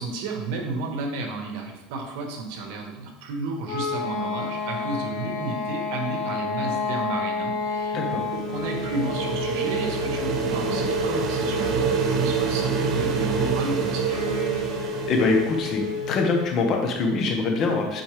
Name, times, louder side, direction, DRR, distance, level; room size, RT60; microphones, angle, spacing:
voice 1, 0.0-14.2, right 3 dB, 70° right, 3 dB, 1.4 m, -32 dB
sound 1, 3.7-16.5, left 4 dB, 70° left, 1.4 m, -31 dB
sound 2, 7.7-16.5, right 6 dB, 45° right, 0.7 m, -27 dB
voice 2, 15.1-18.0, left 3 dB, 40° left, 3 dB, 1.2 m, -24 dB
8.8 x 4.2 x 3.4 m, 1.0 s
supercardioid pair, 130°, 0 cm